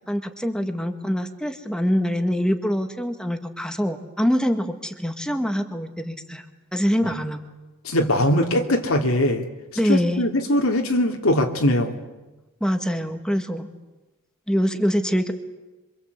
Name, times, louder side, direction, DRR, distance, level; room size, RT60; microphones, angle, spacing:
voice 1, 0.0-6.5 6.7-7.4 9.8-10.2 12.6-13.7 14.5-15.3, equal, 5° left, 7 dB, 1.8 m, -24 dB
voice 2, 7.8-9.4 9.9-11.9, left 1 dB, 85° left, 1 dB, 2.7 m, -21 dB
27.5 x 25.0 x 8.2 m, 1.1 s
head